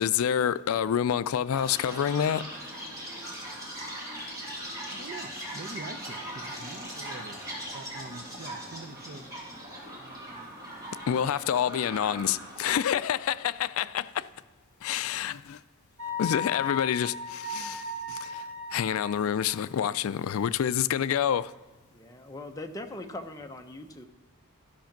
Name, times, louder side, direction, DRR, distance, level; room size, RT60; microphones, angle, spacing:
voice 1, 0.0-2.4 11.1-14.3 14.8-15.6 16.2-18.4 18.7-21.5, left 9 dB, 65° left, 0.3 m, -28 dB
Chirp tweet, 1.5-12.7, equal, 15° right, 2.6 m, -40 dB
voice 2, 4.9-7.4 7.7-9.3 10.0-10.5, right 3 dB, 45° right, 0.6 m, -44 dB
Wind instrument woodwind instrument, 16.0-19.5, left 4 dB, 70° right, 3.7 m, -36 dB
voice 3, 21.9-24.1, left 1 dB, 15° left, 0.7 m, -41 dB
13.0 x 5.8 x 5.9 m
head